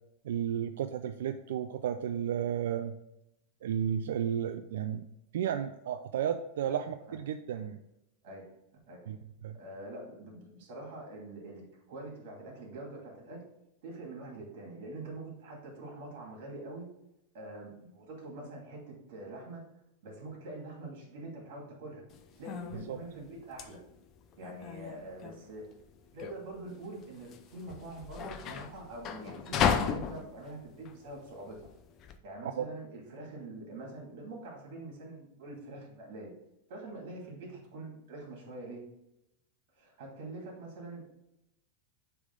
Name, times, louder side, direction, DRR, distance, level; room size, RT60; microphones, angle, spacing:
voice 1, 0.2-3.0 3.6-5.0 5.3-7.8 9.1-9.2 9.4-9.6 22.9-23.0 32.4-32.7, right 9 dB, 90° right, 7 dB, 0.4 m, -33 dB
voice 2, 9.5-13.5 13.8-16.9 17.3-19.6 20.0-22.0 22.3-23.8 24.4-25.7 26.1-31.7 32.2-36.3 36.7-38.8 39.8-41.0, right 2 dB, 50° right, -1 dB, 2.5 m, -45 dB
sound 1, 22.1-32.2, left 7 dB, 25° left, 0.4 m, -35 dB
8.1 x 3.5 x 3.9 m, 0.86 s
supercardioid pair, 175°, 0 cm